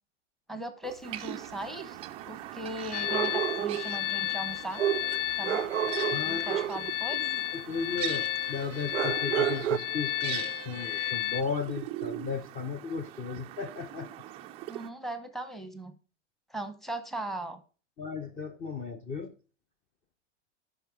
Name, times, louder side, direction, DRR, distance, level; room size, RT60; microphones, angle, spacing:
voice 1, 0.5-2.0 2.2-4.8 5.4-5.7 6.2-7.2 14.7-15.9 16.5-17.6, right 1 dB, ahead, 9 dB, 0.9 m, -38 dB
sound 1, 0.8-0.9 3.0-4.0 4.8-6.9 8.9-9.8, right 11 dB, 90° right, 0.5 m, -30 dB
sound 2, 1.0-14.9, right 14 dB, 20° right, 0.3 m, -42 dB
sound 3, 2.9-11.4, left 15 dB, 90° left, 0.6 m, -32 dB
voice 2, 6.1-6.6 7.5-14.2 18.0-19.3, left 5 dB, 25° left, 10 dB, 0.7 m, -35 dB
9.1 x 5.9 x 3.6 m, 0.35 s
hypercardioid pair, 100°, 36 cm